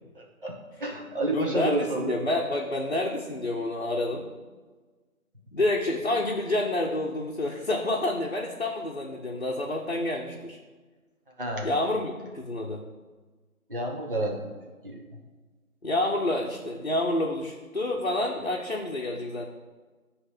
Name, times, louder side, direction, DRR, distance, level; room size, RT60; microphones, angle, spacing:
voice 1, 0.1-2.1 11.4-11.7 13.7-14.5 14.8-15.0, right 2 dB, 35° right, -2 dB, 1.1 m, -30 dB
voice 2, 1.3-4.3 5.5-10.6 11.6-12.8 15.8-19.4, left 2 dB, 45° left, -1 dB, 0.8 m, -28 dB
9.3 x 3.2 x 5.7 m, 1.3 s
figure-of-eight pair, 170°, 44 cm